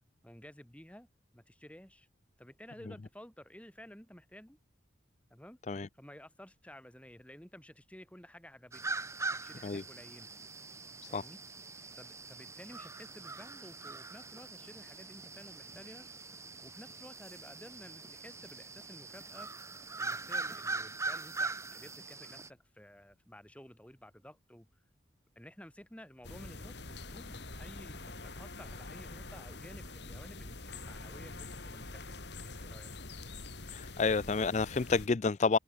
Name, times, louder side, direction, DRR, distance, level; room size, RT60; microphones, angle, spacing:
voice 1, 0.2-1.1 1.3-2.1 2.4-4.6 5.3-5.6 5.9-8.8 9.4-10.3 11.1-11.4 11.9-16.1 16.6-19.5 20.0-24.7 25.3-32.9, equal, 5° left, 2.8 m, -53 dB
sound 1, 8.7-22.5, right 3 dB, 15° right, 3.4 m, -42 dB
sound 2, 26.2-35.1, left 2 dB, 60° left, 2.7 m, -45 dB
voice 2, 33.7-35.6, left 4 dB, 35° left, 0.4 m, -29 dB
head